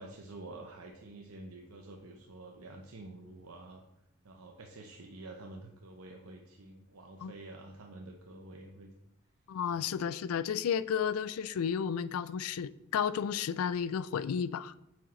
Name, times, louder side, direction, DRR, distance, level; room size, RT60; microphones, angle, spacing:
voice 1, 0.0-3.8 4.2-8.9 9.7-9.9, right 2 dB, 85° right, 0.8 m, -48 dB
voice 2, 9.5-14.7, left 7 dB, 80° left, 0.4 m, -32 dB
8.5 x 6.3 x 3.2 m
head